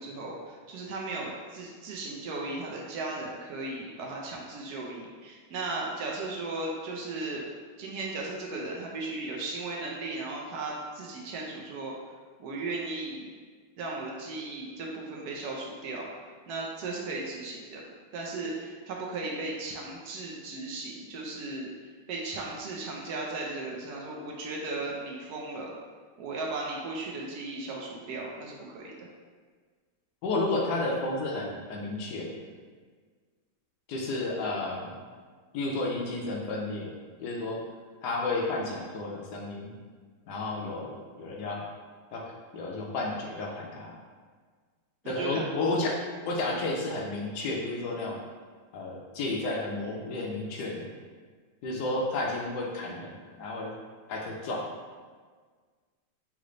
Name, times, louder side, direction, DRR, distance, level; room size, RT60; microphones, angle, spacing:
voice 1, 0.0-7.4 7.8-11.9 12.4-13.3 13.8-16.1 16.5-17.8 18.1-21.7 22.1-25.7 26.2-29.1 45.2-45.5, right 2 dB, 80° right, -2 dB, 0.8 m, -36 dB
voice 2, 30.2-32.3 33.9-35.0 35.5-37.6 38.0-39.7 40.3-41.7 42.1-42.2 42.5-44.0 45.0-45.9 46.3-48.2 48.7-50.9 51.6-53.7 54.1-54.6, left 2 dB, 75° left, -1 dB, 0.9 m, -32 dB
3.7 x 3.2 x 3.7 m, 1.5 s
omnidirectional pair, 2.3 m